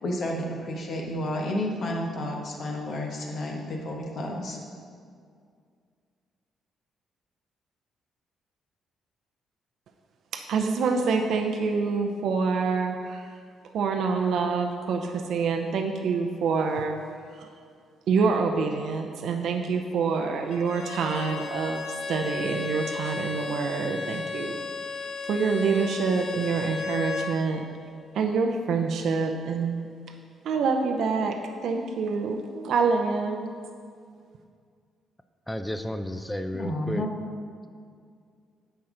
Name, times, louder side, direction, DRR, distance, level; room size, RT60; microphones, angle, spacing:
voice 1, 0.0-4.6 36.5-37.1, left 1 dB, 60° left, 0 dB, 1.2 m, -31 dB
voice 2, 10.3-13.4 13.7-17.0 17.3-17.5 18.1-24.9 25.2-27.6 28.1-29.8 30.4-31.4 31.6-33.5, right 5 dB, 70° right, 4 dB, 0.5 m, -26 dB
Bowed string instrument, 20.5-27.4, left 4 dB, 85° left, 1.0 m, -34 dB
voice 3, 35.5-37.1, left 1 dB, 10° left, 8 dB, 0.4 m, -32 dB
8.6 x 5.7 x 3.8 m, 2.2 s
cardioid pair, 90°, 0 cm